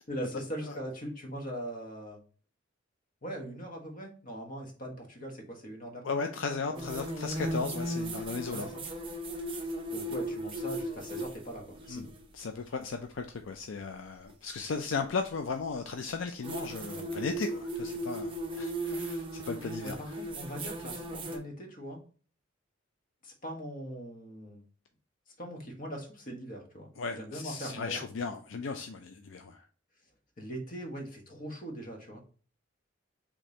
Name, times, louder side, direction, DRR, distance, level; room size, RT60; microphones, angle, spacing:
voice 1, 0.1-2.2 3.2-7.0 8.4-8.8 9.9-12.1 19.8-22.0 23.2-24.6 25.4-28.0 30.4-32.2, equal, 45° left, 2 dB, 1.3 m, -41 dB
voice 2, 6.0-8.7 11.9-12.0 12.3-20.0 27.0-29.6, left 4 dB, 70° left, 6 dB, 0.4 m, -36 dB
sound 1, 6.8-12.3 14.3-14.4 16.4-21.4, right 1 dB, 25° right, 0.9 m, -36 dB
5.1 x 3.5 x 2.8 m, 0.40 s
head